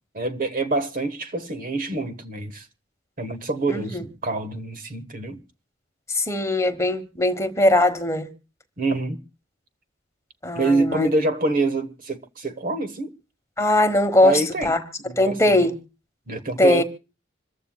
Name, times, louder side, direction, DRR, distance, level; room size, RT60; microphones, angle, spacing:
voice 1, 0.1-2.7 3.2-5.4 8.8-9.2 10.5-13.1 14.2-14.7 15.0-15.7 16.3-16.8, right 2 dB, 45° right, 1.2 m, -26 dB
voice 2, 3.7-4.0 6.1-8.3 10.4-11.1 13.6-14.8 15.2-15.7 16.6-16.8, left 1 dB, 15° left, 1.2 m, -20 dB
26.5 x 14.5 x 2.3 m
head